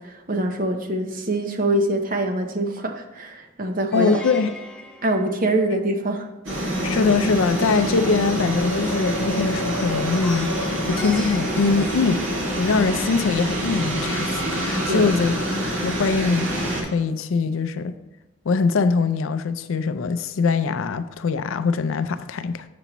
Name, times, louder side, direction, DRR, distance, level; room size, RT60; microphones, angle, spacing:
voice 1, 0.0-4.1 5.0-6.3 14.9-15.1, right 1 dB, 40° right, 0.7 m, -24 dB
voice 2, 3.9-4.5 6.8-15.3 15.8-18.0 18.5-22.6, left 4 dB, 80° left, 0.4 m, -22 dB
Plucked string instrument, 3.9-6.1 10.2-12.8, left 1 dB, 5° left, 0.4 m, -40 dB
sound 1, 6.4-16.8, right 1 dB, 75° right, 1.8 m, -26 dB
7.0 x 6.8 x 3.0 m
head